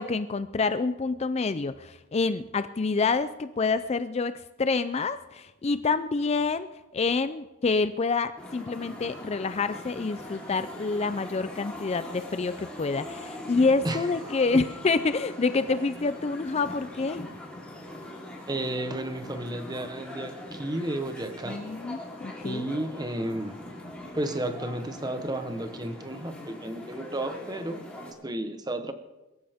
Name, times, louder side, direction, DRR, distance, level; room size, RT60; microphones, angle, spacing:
voice 1, 0.0-17.3 21.5-22.6, left 4 dB, 30° left, 12 dB, 0.4 m, -27 dB
sound 1, 8.4-28.1, left 1 dB, 5° left, 3.6 m, -42 dB
voice 2, 18.5-21.6 22.4-23.6 24.1-28.9, right 1 dB, 20° right, 8 dB, 1.0 m, -33 dB
22.5 x 14.0 x 3.6 m, 1.1 s
head